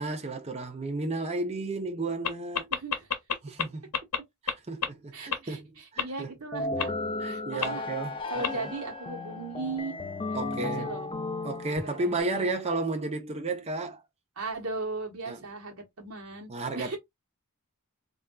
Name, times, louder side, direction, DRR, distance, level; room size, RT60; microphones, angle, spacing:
voice 1, 0.0-2.7 3.4-3.9 4.4-5.7 5.9-6.3 7.2-8.6 10.3-10.9 11.4-14.0 15.3-15.4 16.5-17.0, right 2 dB, 30° right, 0.5 m, -33 dB
sound 1, 2.2-2.3 2.5-3.6 3.9-4.2 4.5-4.6 4.8-4.9 5.3-5.4 6.0-6.1 6.8-6.9 7.6-7.7 8.4-8.5, left 7 dB, 80° left, 0.7 m, -27 dB
voice 2, 2.7-3.1 5.1-6.9 7.2-7.9 8.3-9.9 10.6-11.1 11.7-12.5 14.4-16.5 16.7-17.0, right 3 dB, 70° right, 1.1 m, -37 dB
sound 2, 6.5-12.2, left 2 dB, 20° left, 0.3 m, -34 dB
3.4 x 2.5 x 2.2 m
head